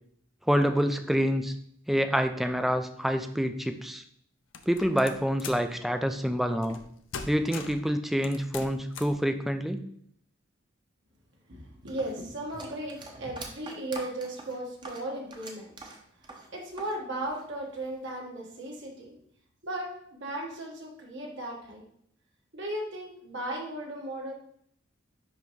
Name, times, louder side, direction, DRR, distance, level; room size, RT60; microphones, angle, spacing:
voice 1, 0.5-1.5 1.9-4.0 4.7-6.8 7.3-9.8, equal, ahead, 8 dB, 0.3 m, -27 dB
sound 1, 4.5-5.7 6.6-6.9 7.1-7.9 8.2-9.2, left 5 dB, 65° left, 0.6 m, -40 dB
voice 2, 11.5-15.8 16.3-19.1 19.6-21.8 22.5-24.3, right 1 dB, 60° right, -1 dB, 1.6 m, -36 dB
sound 2, 11.9-17.0 17.2-18.1, right 3 dB, 25° right, 0.8 m, -44 dB
10.0 x 3.5 x 3.1 m, 0.67 s
head